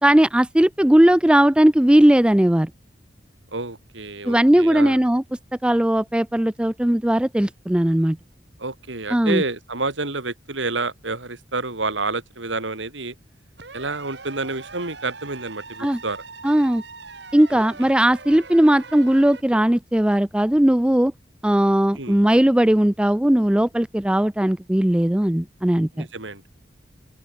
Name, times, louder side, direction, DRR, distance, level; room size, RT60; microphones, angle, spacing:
voice 1, 0.0-2.7 4.2-5.2 5.6-8.2 9.1-9.4 15.8-16.0 16.4-16.8 17.3-21.1 21.4-26.1, right 1 dB, 5° right, 0.3 m, -18 dB
voice 2, 3.5-5.0 8.6-13.1 13.7-16.2 17.5-17.6 22.0-22.2 26.0-26.4, right 3 dB, 85° right, 3.6 m, -29 dB
sound 1, 13.6-19.4, right 4 dB, 70° right, 3.4 m, -41 dB
open air
head